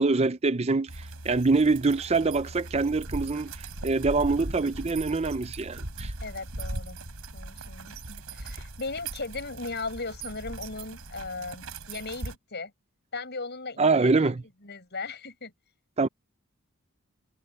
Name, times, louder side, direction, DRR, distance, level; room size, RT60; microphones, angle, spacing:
voice 1, 0.0-6.1 13.8-14.4 16.0-16.1, right 3 dB, 30° right, 0.5 m, -25 dB
sound 1, 0.9-12.4, right 2 dB, 90° right, 4.0 m, -39 dB
voice 2, 6.2-7.0 7.3-12.7 13.1-14.3 14.6-15.5, left 3 dB, 50° left, 7.4 m, -37 dB
head